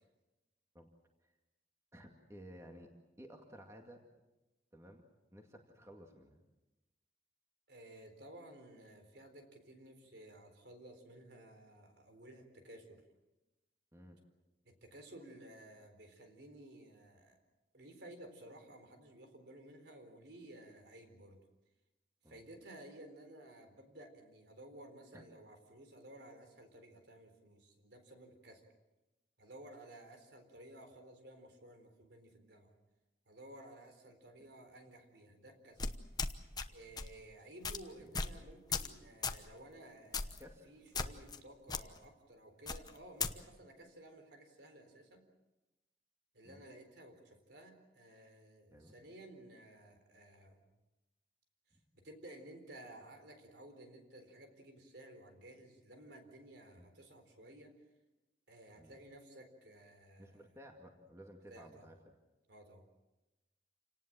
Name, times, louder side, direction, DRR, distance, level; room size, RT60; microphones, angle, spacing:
voice 1, 1.9-2.9 3.2-4.0 4.7-5.0 5.3-6.4 13.9-14.2 22.2-22.4 25.1-25.2 38.0-38.2 40.4-40.7 46.4-46.6 48.7-48.9 56.8-56.9 58.8-58.9 60.2-62.0, equal, 15° right, 2 dB, 2.2 m, -55 dB
voice 2, 7.7-13.0 14.6-17.4 17.7-21.4 22.3-28.6 29.4-32.7 33.3-35.8 36.7-45.2 46.3-50.6 51.9-57.7 58.5-60.4 61.5-61.9 62.5-62.8, right 1 dB, 65° right, 6 dB, 4.2 m, -55 dB
sound 1, 35.8-36.7 37.0-37.2 37.6-37.8 38.1-38.4 38.7-38.9 39.2-39.4 40.1-40.4 40.9-41.4 41.7-41.8 42.7-43.3, left 4 dB, 20° left, 1.0 m, -37 dB
28.5 x 18.5 x 7.6 m, 1.0 s
head